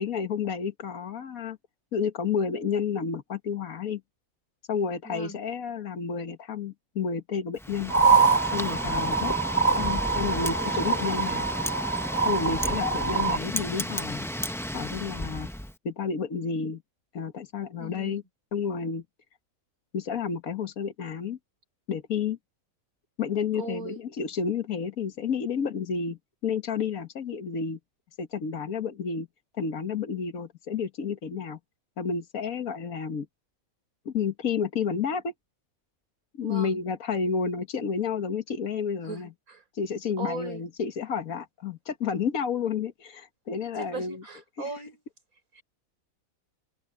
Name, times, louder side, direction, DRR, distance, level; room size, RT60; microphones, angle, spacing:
voice 1, 0.0-1.6 1.9-4.0 4.7-7.9 8.5-9.3 9.8-11.5 12.3-14.3 14.7-15.5 15.9-16.8 17.1-18.2 18.5-19.0 19.9-21.4 21.9-22.4 23.2-27.8 28.2-29.3 29.6-31.6 32.0-33.3 34.1-35.3 36.4-39.3 39.8-44.2, left 6 dB, 80° left, 1.9 m, -30 dB
voice 2, 5.0-5.4 17.8-18.2 23.5-24.0 36.4-36.8 39.0-39.6 40.2-40.7 43.8-45.0 45.5-45.6, right 4 dB, 80° right, 4.8 m, -39 dB
Wind, 7.6-15.7, equal, 5° left, 0.4 m, -33 dB
sound 1, 7.9-13.4, right 5 dB, 25° left, 3.2 m, -25 dB
open air
omnidirectional pair, 1.5 m